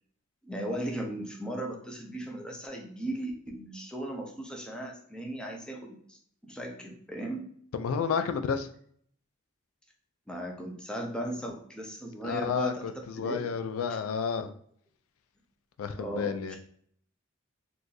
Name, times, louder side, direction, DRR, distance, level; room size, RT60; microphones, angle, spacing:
voice 1, 0.4-7.5 10.3-13.5 15.9-16.6, right 1 dB, 5° left, 0 dB, 0.5 m, -37 dB
voice 2, 7.7-8.7 12.2-12.9 13.2-14.5 15.8-16.6, left 6 dB, 90° left, 9 dB, 0.3 m, -30 dB
2.6 x 2.3 x 3.8 m, 0.63 s
head